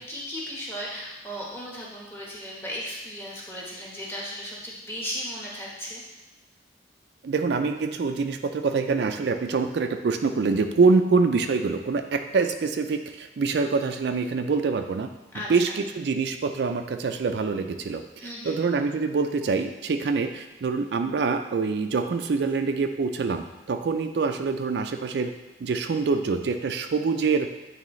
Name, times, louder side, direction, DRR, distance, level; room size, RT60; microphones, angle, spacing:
voice 1, 0.0-6.0 15.3-15.8 18.2-18.6, equal, 15° left, -5 dB, 1.2 m, -36 dB
voice 2, 7.2-15.1 15.5-25.3 25.6-27.5, right 4 dB, 70° right, 6 dB, 0.4 m, -25 dB
9.1 x 3.5 x 3.1 m, 1.1 s
head